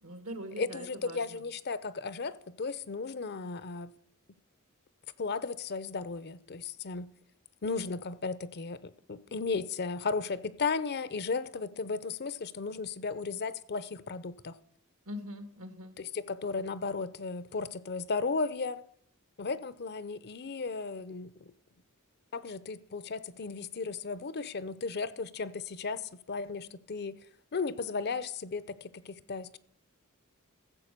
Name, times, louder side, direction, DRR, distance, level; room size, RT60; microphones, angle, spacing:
voice 1, 0.0-1.4 15.1-16.0, equal, 75° right, 1.7 m, -42 dB
voice 2, 0.6-3.9 5.2-7.1 7.6-14.6 16.0-18.8 19.4-21.5 22.3-27.1 27.5-29.6, left 4 dB, 45° left, 0.6 m, -35 dB
14.5 x 7.6 x 6.6 m
head